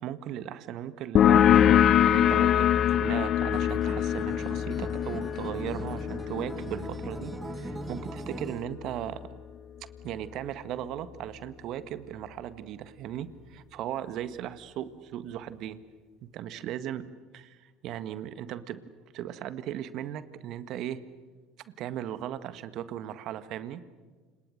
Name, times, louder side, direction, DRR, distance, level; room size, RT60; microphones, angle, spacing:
voice 1, 0.0-9.2 10.0-15.8 16.3-17.0 17.3-18.8 19.1-21.0 21.8-23.8, right 11 dB, 55° right, 13 dB, 1.7 m, -37 dB
sound 1, 1.2-8.4, left 10 dB, 45° left, 0.8 m, -24 dB
Acoustic guitar, 3.5-8.6, right 3 dB, 20° right, 2.1 m, -41 dB
29.5 x 27.5 x 6.5 m, 1.4 s
hypercardioid pair, 70°, 0 cm